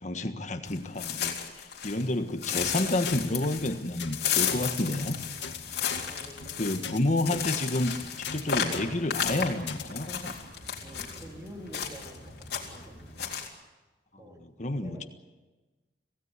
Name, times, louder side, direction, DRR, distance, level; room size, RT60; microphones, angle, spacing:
voice 1, 0.0-1.4 1.8-5.1 6.6-10.3 14.4-15.1, left 1 dB, 40° left, 8 dB, 1.5 m, -30 dB
sound 1, 0.7-2.1 2.4-11.2 11.7-12.2 12.4-12.8 13.2-13.5, left 8 dB, 60° left, 3.8 m, -33 dB
sound 2, 2.6-2.7 3.0-3.2 3.5-3.7 4.0-4.2 4.4-4.6 4.9-5.1 5.4-5.6 5.9-6.0 6.3-6.5 6.8-7.0 7.3-7.4 7.7-7.9 8.2-8.4 8.7-8.9 9.2-9.4 9.7-9.8, left 6 dB, 80° left, 2.2 m, -38 dB
sound 3, 4.3-13.3, equal, 5° left, 5.3 m, -51 dB
voice 2, 6.0-7.0 10.8-13.4 14.2-14.4 14.8-15.1, equal, 20° right, 0 dB, 3.8 m, -48 dB
26.0 x 17.0 x 8.3 m, 1.2 s
head